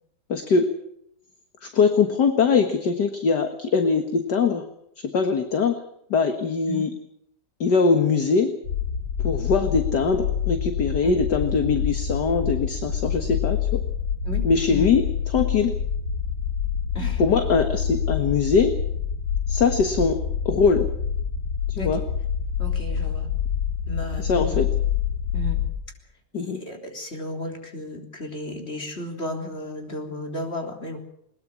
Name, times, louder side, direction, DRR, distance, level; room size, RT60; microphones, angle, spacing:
voice 1, 0.3-0.7 1.6-4.6 5.1-5.8 6.1-6.9 7.6-8.5 9.2-13.8 14.4-15.0 15.3-15.7 17.2-18.7 19.5-20.2 20.5-20.9 21.7-22.0 24.2-24.7 26.3-26.6, left 5 dB, 55° left, 7 dB, 2.1 m, -22 dB
sound 1, 8.6-25.7, left 8 dB, 80° left, 6.9 m, -27 dB
voice 2, 14.2-14.9 16.9-17.2 21.8-22.0 22.6-23.3 23.9-24.7 25.3-25.6 26.3-31.0, left 1 dB, 30° left, 3 dB, 3.9 m, -34 dB
21.5 x 21.0 x 6.1 m, 0.75 s
omnidirectional pair, 2.3 m